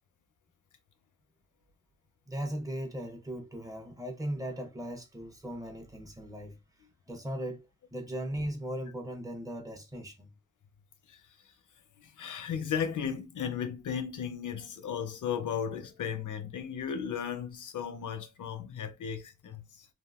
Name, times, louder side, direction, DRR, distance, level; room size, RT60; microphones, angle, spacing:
voice 1, 2.3-6.6 7.1-10.3, right 1 dB, 10° right, 0.6 m, -38 dB
voice 2, 12.0-19.9, left 7 dB, 85° left, 0.6 m, -35 dB
3.5 x 2.4 x 2.4 m
wide cardioid pair, 175°, 30 cm